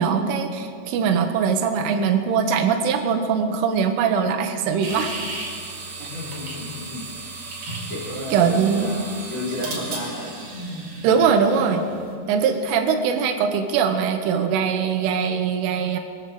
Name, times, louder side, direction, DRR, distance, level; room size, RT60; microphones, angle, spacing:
voice 1, 0.0-5.2 6.0-6.1 8.3-8.9 11.0-11.8 12.3-16.0, right 6 dB, 85° right, 6 dB, 3.5 m, -21 dB
sound 1, 4.8-12.1, right 3 dB, 55° right, 4.7 m, -34 dB
voice 2, 6.1-7.0 7.4-7.5 7.9-10.3, left 1 dB, 25° left, -5 dB, 3.7 m, -32 dB
23.0 x 8.0 x 7.7 m, 2.2 s
omnidirectional pair, 5.5 m